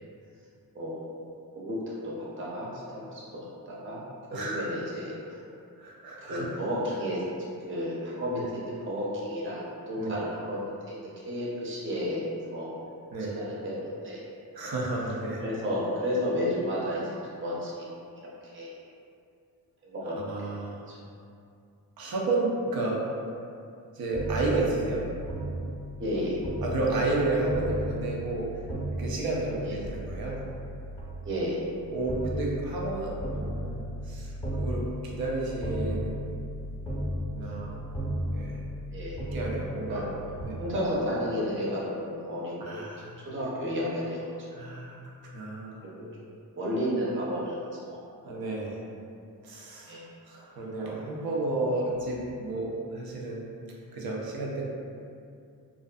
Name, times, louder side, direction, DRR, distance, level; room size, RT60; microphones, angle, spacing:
voice 1, 0.7-1.1 1.5-4.0 4.3-5.4 6.3-7.2 7.7-12.2 12.5-12.7 13.3-14.2 15.4-17.1 17.4-17.9 18.4-18.8 19.8-20.6 20.9-21.0 26.0-26.4 29.7-29.8 31.2-31.6 38.9-39.2 39.9-40.1 40.6-42.8 43.3-44.5 45.8-46.1 46.6-48.0 49.8-50.0, equal, 35° right, -6 dB, 0.6 m, -32 dB
voice 2, 4.3-4.7 5.8-6.5 8.3-8.4 10.0-10.2 13.1-13.4 14.5-15.4 20.3-20.8 22.0-23.0 23.9-25.1 26.6-28.5 28.9-30.4 31.9-36.3 37.3-37.8 38.3-38.7 39.2-40.0 40.4-40.6 42.6-43.3 44.5-45.0 45.3-45.8 48.3-48.8 49.4-53.5 53.9-54.6, right 2 dB, 80° right, -3 dB, 0.6 m, -31 dB
sound 1, 24.1-40.4, equal, 15° left, 0.7 m, -35 dB
2.5 x 2.4 x 2.2 m, 2.5 s
cardioid pair, 65°, 35 cm